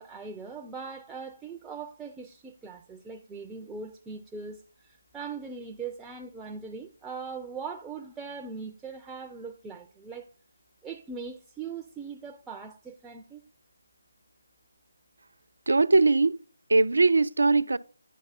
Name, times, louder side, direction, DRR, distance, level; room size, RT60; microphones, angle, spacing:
voice 1, 0.0-10.3 10.8-13.4, right 5 dB, 10° right, 0.4 m, -40 dB
voice 2, 15.7-16.4 16.7-17.8, right 3 dB, 70° right, 0.4 m, -21 dB
10.0 x 4.6 x 4.0 m
figure-of-eight pair, 155°, 0 cm